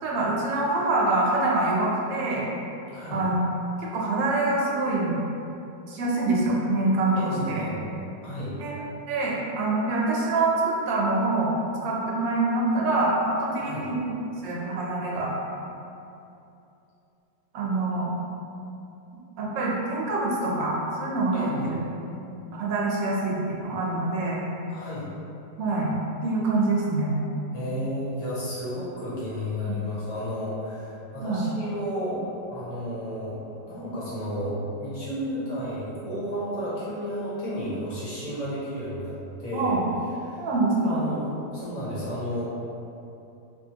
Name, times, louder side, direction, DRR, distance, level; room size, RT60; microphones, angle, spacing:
voice 1, 0.0-2.4 3.1-3.5 3.9-5.2 5.9-7.6 8.6-8.7 9.1-11.5 11.8-14.0 14.4-15.3 17.5-18.1 19.4-21.8 22.5-24.4 25.6-26.0 26.2-27.2 29.7-29.8 31.2-31.5 39.5-39.8 40.4-41.0, right 2 dB, 80° right, -4 dB, 1.3 m, -25 dB
voice 2, 2.9-3.2 7.1-7.8 8.2-8.5 13.6-13.9 21.3-21.8 24.7-25.1 27.5-32.2 32.5-33.4 33.7-39.1 39.4-39.8 40.2-40.5 40.8-42.5, equal, 60° left, -9 dB, 1.1 m, -32 dB
3.1 x 2.7 x 2.7 m, 2.8 s
omnidirectional pair, 2.0 m